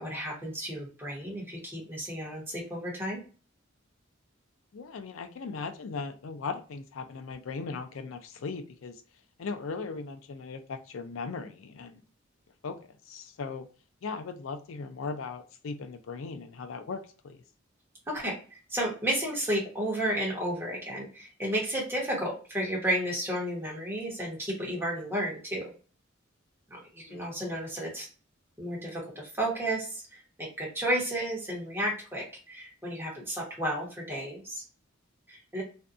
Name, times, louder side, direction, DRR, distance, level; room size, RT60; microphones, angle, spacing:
voice 1, 0.0-3.2 18.1-25.7 26.7-28.1 28.6-34.6 35.3-35.6, right 1 dB, 10° right, -3 dB, 1.0 m, -32 dB
voice 2, 4.7-8.9 9.4-12.0 12.6-12.8 13.1-13.7 14.0-17.4 27.1-27.2, left 4 dB, 85° left, 8 dB, 0.4 m, -38 dB
2.6 x 2.2 x 2.4 m, 0.37 s
head